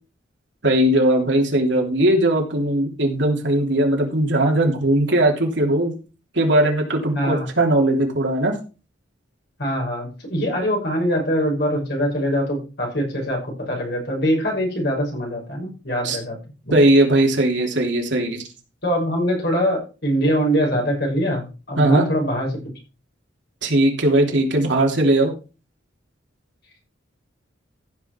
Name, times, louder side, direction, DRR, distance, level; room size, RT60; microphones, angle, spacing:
voice 1, 0.6-6.0 6.3-8.5 16.0-16.2 16.7-18.4 21.8-22.1 23.6-25.3, right 1 dB, 65° right, 1 dB, 3.3 m, -19 dB
voice 2, 7.1-7.5 9.6-16.4 16.6-16.7 18.8-22.5, equal, 55° left, 0 dB, 5.6 m, -23 dB
15.0 x 6.4 x 4.6 m, 0.34 s
head